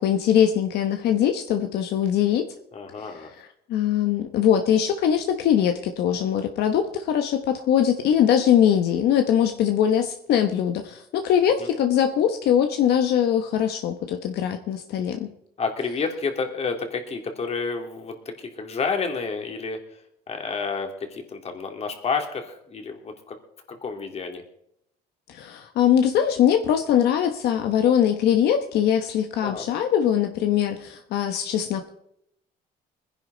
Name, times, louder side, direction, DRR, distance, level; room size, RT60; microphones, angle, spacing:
voice 1, 0.0-2.5 3.0-15.3 25.3-31.9, left 9 dB, 75° left, 6 dB, 1.2 m, -22 dB
voice 2, 2.7-3.3 11.6-11.7 15.6-19.8 20.3-23.4 23.7-24.4 29.4-29.7, left 4 dB, 40° left, 4 dB, 2.7 m, -30 dB
21.5 x 10.5 x 4.0 m, 0.76 s
cardioid pair, 110°, 17 cm